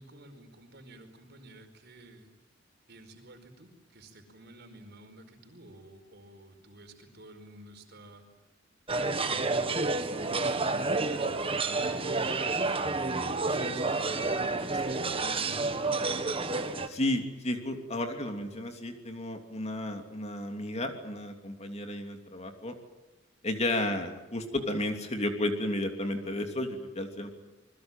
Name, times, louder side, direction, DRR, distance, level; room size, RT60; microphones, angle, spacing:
voice 1, 0.0-2.4 2.9-8.2 9.1-12.3 13.5-16.2 23.8-24.0, right 1 dB, 55° right, 6 dB, 4.8 m, -51 dB
sound 1, 8.9-16.9, right 3 dB, 30° right, 1.7 m, -29 dB
voice 2, 16.9-22.7 23.4-27.3, left 1 dB, 35° left, 5 dB, 3.0 m, -33 dB
27.5 x 21.0 x 9.1 m, 1.0 s
head